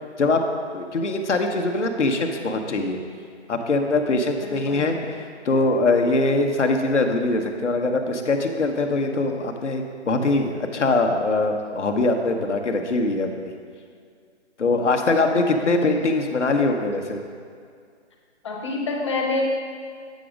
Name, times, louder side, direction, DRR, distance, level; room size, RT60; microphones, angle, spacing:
voice 1, 0.7-3.0 3.5-13.3 14.6-17.2, left 2 dB, 80° left, 4 dB, 1.1 m, -22 dB
voice 2, 4.4-4.9 15.3-15.9 18.4-19.4, left 3 dB, 25° left, -1 dB, 0.8 m, -28 dB
8.5 x 5.2 x 5.1 m, 2.2 s
hypercardioid pair, 160°, 35 cm